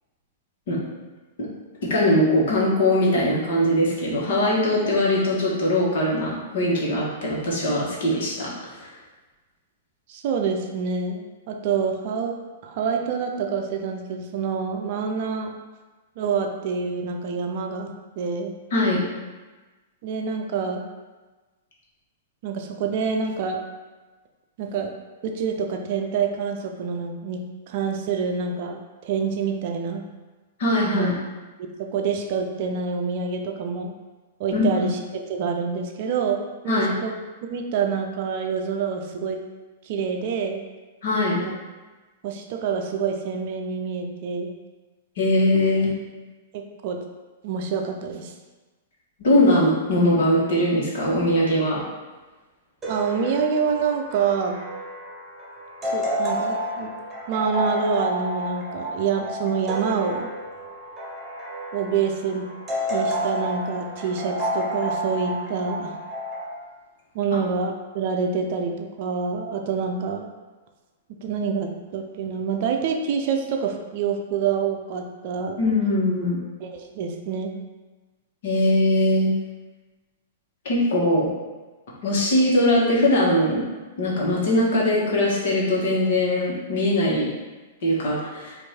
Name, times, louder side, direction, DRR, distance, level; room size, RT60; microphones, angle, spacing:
voice 1, 1.8-8.9 18.7-19.0 30.6-31.1 34.5-34.8 36.7-36.9 41.0-41.4 45.2-46.0 49.2-51.8 75.6-76.4 78.4-79.3 80.6-81.3 82.0-83.6 84.0-87.3 87.8-88.6, left 1 dB, 55° left, -4 dB, 1.4 m, -21 dB
voice 2, 10.1-12.4 12.6-15.5 16.2-17.9 18.2-18.6 20.0-20.8 22.4-23.6 24.6-24.9 25.2-30.0 30.9-31.1 31.6-33.9 34.4-37.1 37.5-39.4 39.8-40.6 41.4-41.5 42.2-44.5 46.5-47.0 47.4-48.3 52.9-54.6 55.8-56.9 57.3-60.3 61.7-62.5 62.9-66.0 67.1-70.3 71.2-75.6 76.6-77.5, right 6 dB, 45° right, 3 dB, 0.5 m, -27 dB
sound 1, 52.8-66.5, equal, 15° right, 1.2 m, -30 dB
4.5 x 2.6 x 4.3 m, 1.2 s
figure-of-eight pair, 105°, 0 cm